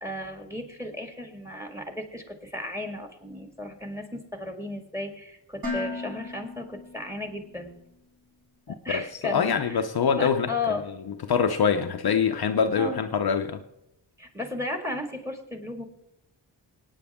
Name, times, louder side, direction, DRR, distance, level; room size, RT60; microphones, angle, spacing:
voice 1, 0.0-7.7 8.7-9.8 10.1-10.9 12.8-13.0 14.2-15.8, left 2 dB, 5° right, 2.0 m, -34 dB
Dishes pots and pans, 5.6-7.7, left 3 dB, 50° right, 5.5 m, -36 dB
voice 2, 8.9-10.5 11.3-13.6, left 6 dB, 55° left, 0.7 m, -24 dB
25.5 x 9.2 x 3.6 m
wide cardioid pair, 105°, 46 cm